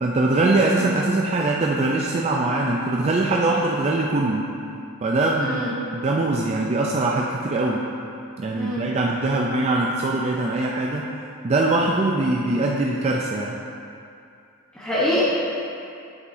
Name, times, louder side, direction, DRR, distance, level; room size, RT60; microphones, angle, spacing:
voice 1, 0.0-4.5 5.0-7.9 8.4-11.1 11.4-13.6, right 2 dB, 30° right, -2 dB, 0.4 m, -22 dB
voice 2, 5.4-5.7 8.5-8.9 14.8-15.2, left 1 dB, 5° left, -10 dB, 1.0 m, -24 dB
8.4 x 7.8 x 2.6 m, 2.5 s
head